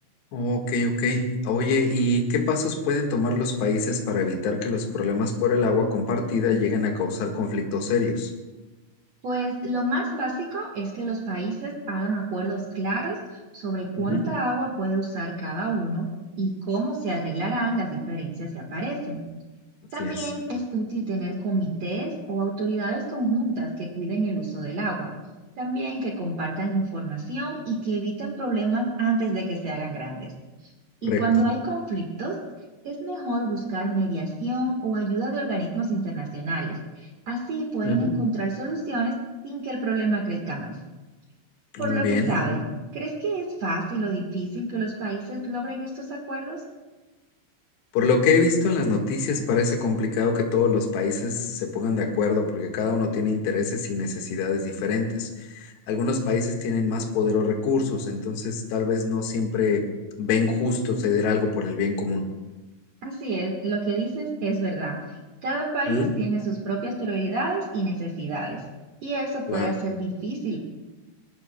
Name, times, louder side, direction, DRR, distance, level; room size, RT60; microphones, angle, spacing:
voice 1, 0.3-8.3 14.0-14.2 20.0-20.3 31.0-31.2 37.8-38.1 41.8-42.6 47.9-59.8 60.2-62.2 65.9-66.1 69.5-69.7, left 4 dB, 65° left, 2 dB, 3.5 m, -24 dB
voice 2, 9.2-16.1 16.4-19.3 19.9-25.1 25.6-30.3 30.6-30.7 31.0-32.3 32.8-39.1 39.4-40.7 41.8-42.6 42.9-46.6 63.0-65.0 65.4-68.6 69.0-70.6, right 2 dB, 75° right, -1 dB, 1.5 m, -28 dB
23.5 x 19.5 x 2.3 m, 1.2 s
omnidirectional pair, 5.7 m